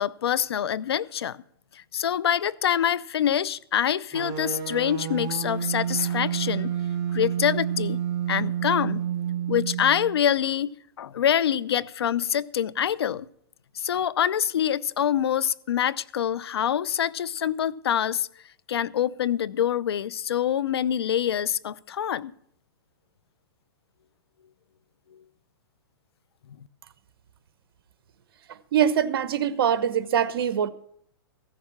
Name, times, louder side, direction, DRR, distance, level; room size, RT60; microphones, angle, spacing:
voice 1, 0.0-1.4 1.7-6.7 7.1-8.0 8.3-9.0 9.5-10.7 11.0-13.3 13.8-18.3 18.7-22.3, left 9 dB, 90° left, 0.6 m, -25 dB
sound 1, 4.1-10.2, right 9 dB, 25° right, 1.8 m, -29 dB
voice 2, 28.7-30.7, right 9 dB, 70° right, 1.0 m, -23 dB
15.5 x 6.7 x 7.1 m
hypercardioid pair, 140°, 13 cm